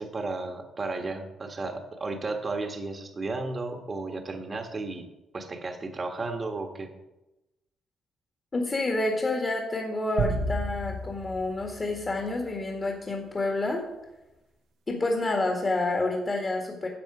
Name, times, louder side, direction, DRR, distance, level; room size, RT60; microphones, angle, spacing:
voice 1, 0.0-5.1 5.3-6.9, right 3 dB, 35° right, 5 dB, 1.4 m, -33 dB
voice 2, 8.5-13.8 14.9-16.9, left 2 dB, 30° left, 1 dB, 1.9 m, -28 dB
sound 1, 10.2-12.7, right 2 dB, 90° right, 1.3 m, -32 dB
11.5 x 7.2 x 4.9 m, 0.99 s
cardioid pair, 90°, 0 cm